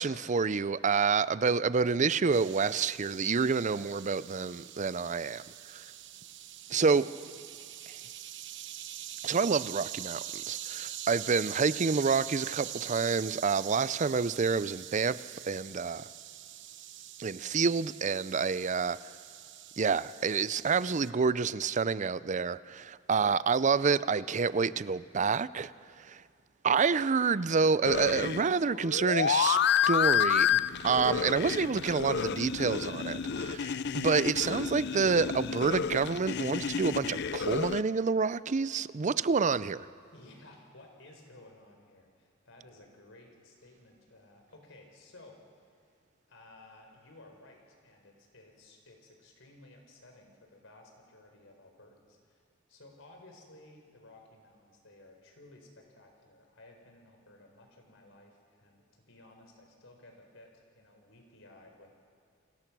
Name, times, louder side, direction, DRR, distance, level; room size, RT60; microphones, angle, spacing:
voice 1, 0.0-5.4 5.7-5.8 6.7-7.0 9.2-16.1 17.2-19.0 19.8-25.7 26.0-26.2 26.6-29.6 29.9-39.9, right 5 dB, 40° right, 0.5 m, -28 dB
sound 1, 2.3-21.1, right 12 dB, 65° right, 0.9 m, -44 dB
voice 2, 6.9-7.4 18.5-19.0 40.1-46.0 46.3-61.9, left 2 dB, 75° left, 4.5 m, -56 dB
sound 2, 27.8-37.8, left 7 dB, 55° left, 0.6 m, -30 dB
29.5 x 20.5 x 6.1 m
head